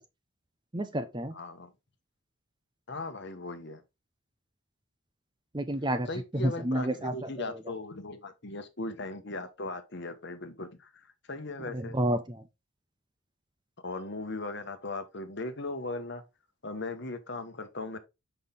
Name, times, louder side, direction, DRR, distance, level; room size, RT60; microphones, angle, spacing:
voice 1, 0.7-1.3 5.5-7.6 11.6-12.4, right 1 dB, 20° right, 0.7 m, -31 dB
voice 2, 1.3-1.7 2.9-3.8 6.1-12.0 13.8-16.2 16.6-18.0, left 2 dB, 50° left, 1.2 m, -38 dB
6.3 x 5.6 x 3.7 m
head